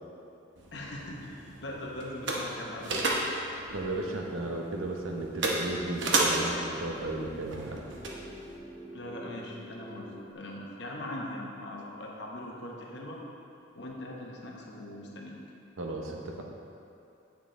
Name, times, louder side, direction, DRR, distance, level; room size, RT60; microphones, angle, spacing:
sound 1, 0.6-8.6, right 2 dB, 60° right, 0.9 m, -33 dB
voice 1, 0.7-2.9 8.9-13.2 13.7-15.4, left 1 dB, 55° left, -2 dB, 1.0 m, -40 dB
voice 2, 3.7-7.8 15.8-16.5, right 2 dB, 85° right, 1 dB, 0.9 m, -34 dB
sound 2, 5.1-10.3, right 1 dB, 20° left, 0.5 m, -48 dB
8.8 x 5.9 x 3.8 m, 2.6 s
head